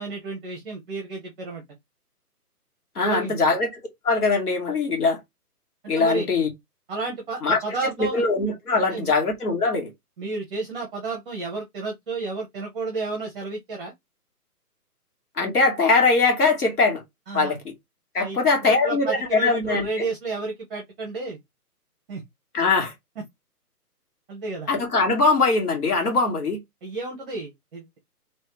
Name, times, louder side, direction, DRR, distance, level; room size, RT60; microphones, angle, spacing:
voice 1, 0.0-1.6 3.0-3.3 5.9-6.3 6.9-8.2 8.7-9.1 10.2-13.9 17.3-17.5 18.2-18.4 18.7-21.4 22.1-22.2 24.3-24.7 26.8-28.0, right 3 dB, 5° right, 0.8 m, -31 dB
voice 2, 3.0-3.7 4.0-5.2 5.9-6.5 7.4-9.9 15.4-17.0 17.3-17.6 18.1-20.1 22.5-22.9 24.7-26.6, left 3 dB, 70° left, 2.6 m, -21 dB
4.2 x 3.2 x 3.2 m
hypercardioid pair, 165°, 47 cm